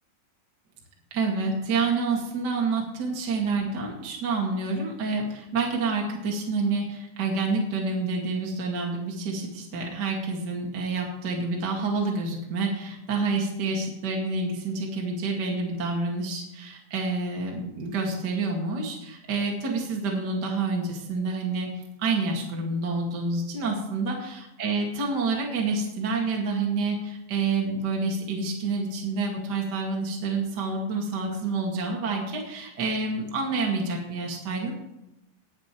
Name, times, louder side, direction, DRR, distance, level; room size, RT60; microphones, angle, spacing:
voice 1, 1.1-24.2 24.6-34.7, right 3 dB, 35° right, -1 dB, 2.1 m, -28 dB
20.0 x 7.1 x 4.5 m, 0.88 s
omnidirectional pair, 4.2 m